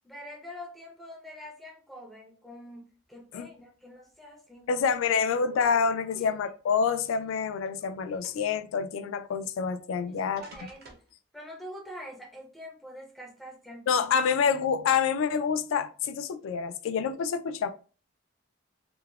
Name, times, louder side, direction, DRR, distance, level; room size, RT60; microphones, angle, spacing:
voice 1, 0.0-4.8 6.1-6.3 10.1-11.0 11.3-14.0, equal, ahead, 0.4 m, -45 dB
sound 1, 4.6-4.7 5.2-6.2 7.0-7.9 8.2-8.6 9.7-9.8 10.4-11.1, right 4 dB, 50° right, 0.6 m, -51 dB
voice 2, 4.7-10.4 13.9-17.7, left 6 dB, 85° left, 0.3 m, -27 dB
2.9 x 2.0 x 2.3 m
head